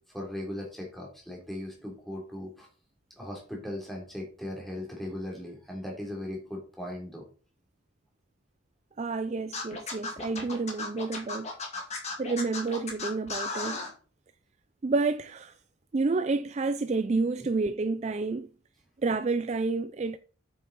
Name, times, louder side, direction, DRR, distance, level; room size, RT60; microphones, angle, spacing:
voice 1, 0.1-2.7 3.2-7.2, left 1 dB, ahead, 3.2 m, -38 dB
voice 2, 9.0-11.5 12.2-13.8 14.8-15.5 15.9-18.5 19.0-20.2, right 3 dB, 35° right, 0.4 m, -29 dB
Scratching (performance technique), 9.5-13.9, left 3 dB, 30° left, 2.3 m, -35 dB
8.4 x 7.2 x 4.1 m
head